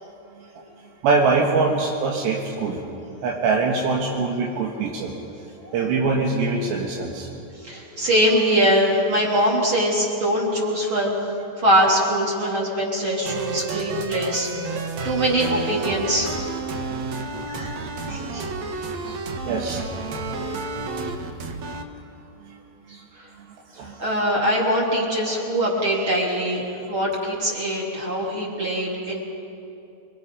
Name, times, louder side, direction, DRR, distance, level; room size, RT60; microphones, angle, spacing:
voice 1, 1.0-2.8 3.2-5.1 5.7-7.3 18.1-18.2 19.5-19.8 20.5-20.6 22.5-22.6 23.8-24.0, right 4 dB, 80° right, -2 dB, 3.8 m, -23 dB
voice 2, 5.6-5.9 7.6-11.1 11.6-16.4 16.6-16.8 17.4-17.7 18.1-19.2 23.2-23.3 23.8-29.2, equal, 30° right, -4 dB, 3.8 m, -23 dB
sound 1, 13.3-21.8, right 3 dB, 65° right, 1.8 m, -30 dB
29.0 x 22.0 x 5.5 m, 2.8 s
omnidirectional pair, 4.9 m